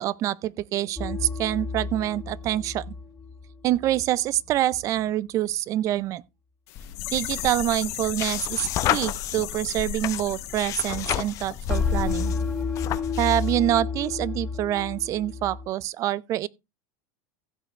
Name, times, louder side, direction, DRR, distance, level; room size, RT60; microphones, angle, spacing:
voice 1, 0.0-2.8 3.6-6.2 7.1-12.3 13.2-16.5, right 13 dB, 40° right, 0.5 m, -26 dB
sound 1, 1.0-4.1 11.7-15.7, left 4 dB, 10° left, 0.8 m, -31 dB
sound 2, 6.7-12.3 12.6-12.7, left 16 dB, 70° left, 1.8 m, -36 dB
sound 3, 6.8-13.6, left 10 dB, 40° left, 0.8 m, -31 dB
15.5 x 6.5 x 3.2 m
supercardioid pair, 130°, 8 cm